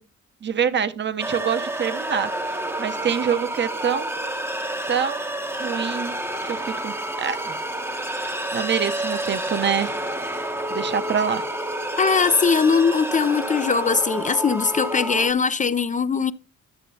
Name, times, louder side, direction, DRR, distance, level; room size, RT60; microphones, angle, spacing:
voice 1, 0.4-2.3 2.8-4.1 4.9-5.2 5.6-6.1 6.4-7.6 8.2-9.9 10.7-11.4, right 7 dB, 35° right, 0.8 m, -25 dB
sound 1, 1.2-15.3, right 1 dB, 10° right, 0.8 m, -29 dB
voice 2, 12.0-16.3, left 5 dB, 25° left, 0.4 m, -20 dB
11.5 x 6.6 x 2.7 m
cardioid pair, 90°, 30 cm